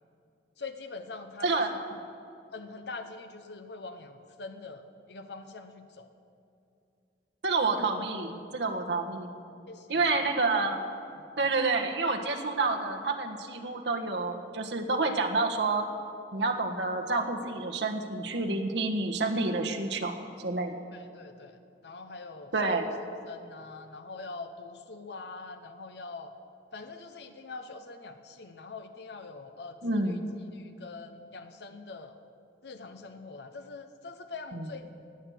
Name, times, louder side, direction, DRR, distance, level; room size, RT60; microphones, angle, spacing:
voice 1, 0.6-1.8 2.5-6.1 9.7-10.0 11.1-11.5 20.9-22.9 23.3-26.3 26.7-30.2 30.5-32.2 32.6-34.9, left 3 dB, 70° left, 8 dB, 0.8 m, -44 dB
voice 2, 1.4-2.0 7.4-9.3 9.9-10.8 11.4-15.9 16.3-20.7 22.5-22.8 29.8-30.2 34.5-34.7, right 3 dB, 80° right, 3 dB, 1.4 m, -29 dB
18.5 x 6.6 x 9.3 m, 2.6 s
head